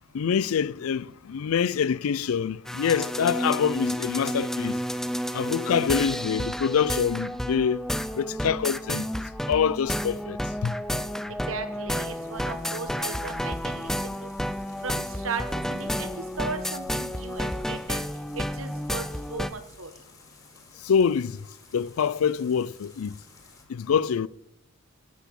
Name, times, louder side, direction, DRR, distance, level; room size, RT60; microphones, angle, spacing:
voice 1, 0.1-4.8 5.3-7.8 8.1-9.1 9.5-10.8 20.8-21.4 21.7-23.1 23.7-24.3, left 7 dB, 90° left, 0.4 m, -25 dB
sound 1, 2.6-19.5, equal, ahead, 0.4 m, -31 dB
voice 2, 11.5-14.3 14.8-15.4 15.7-18.0 18.3-19.9, right 4 dB, 75° right, 1.3 m, -36 dB
sound 2, 12.0-23.6, left 3 dB, 20° left, 1.9 m, -55 dB
10.5 x 8.2 x 7.0 m
head